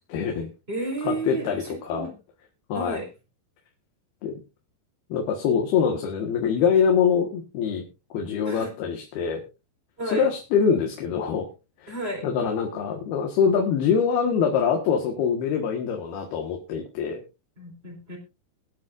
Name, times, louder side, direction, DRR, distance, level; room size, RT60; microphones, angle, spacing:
voice 1, 0.1-0.5 1.0-2.1 2.7-3.0 4.2-4.4 5.1-7.8 8.1-9.4 10.1-11.5 11.8-11.9 12.2-17.2, left 6 dB, 80° left, 2 dB, 3.5 m, -24 dB
voice 2, 0.7-2.1 2.7-3.1 8.4-8.7 10.0-10.3 11.9-12.3 17.6-18.2, right 2 dB, 15° right, 3 dB, 4.3 m, -32 dB
22.0 x 9.4 x 2.5 m, 0.29 s
omnidirectional pair, 4.4 m